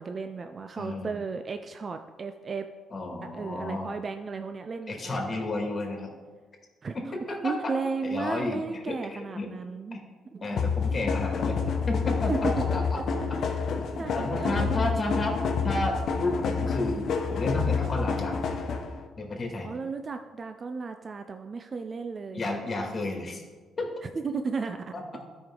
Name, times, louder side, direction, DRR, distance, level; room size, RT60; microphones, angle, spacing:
voice 1, 0.0-2.7 3.3-5.3 6.8-6.9 7.3-10.0 10.3-10.6 12.3-12.6 14.0-15.0 19.6-22.5 24.0-25.2, right 4 dB, 40° right, 7 dB, 0.4 m, -34 dB
voice 2, 0.8-1.1 2.9-3.9 4.9-6.1 6.9-7.7 8.0-9.5 9.9-10.0 10.4-11.6 11.9-13.4 13.7-15.4 15.6-18.4 19.2-19.7 22.3-23.4 23.8-23.9 24.9-25.2, left 2 dB, 35° left, 1 dB, 2.0 m, -32 dB
sound 1, 10.6-19.0, left 5 dB, 65° left, 0.9 m, -28 dB
12.5 x 5.2 x 3.7 m, 1.4 s
cardioid pair, 90°, 0 cm